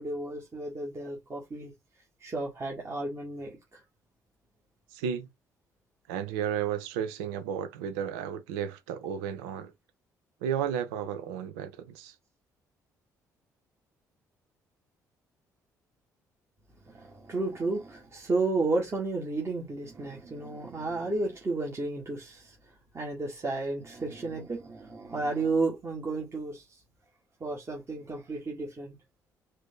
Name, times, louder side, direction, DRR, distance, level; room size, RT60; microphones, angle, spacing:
voice 1, 0.0-1.7 2.2-3.8 16.9-22.5 22.9-26.8 27.4-29.0, right 3 dB, 30° right, 1.7 m, -32 dB
voice 2, 4.9-5.3 6.1-9.7 10.4-12.2, right 8 dB, 65° right, 0.5 m, -33 dB
4.9 x 2.7 x 3.7 m
figure-of-eight pair, 45°, 9 cm